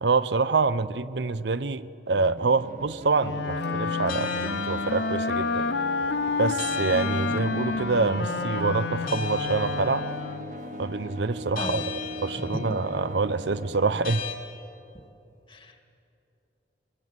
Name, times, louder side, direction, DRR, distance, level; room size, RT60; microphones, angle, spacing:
voice 1, 0.0-5.6 6.4-10.1 10.8-11.8 12.2-14.2, right 4 dB, 80° right, 13 dB, 0.7 m, -26 dB
sound 1, 2.1-14.1, right 1 dB, 45° right, 0.9 m, -40 dB
Wind instrument woodwind instrument, 3.2-10.6, left 4 dB, 70° left, 0.7 m, -29 dB
sound 2, 4.1-14.3, left 7 dB, 50° left, 2.9 m, -39 dB
voice 2, 11.5-11.9 12.5-12.8 15.5-15.8, left 1 dB, 30° left, 5 dB, 2.0 m, -34 dB
24.5 x 23.0 x 8.1 m, 2.8 s
head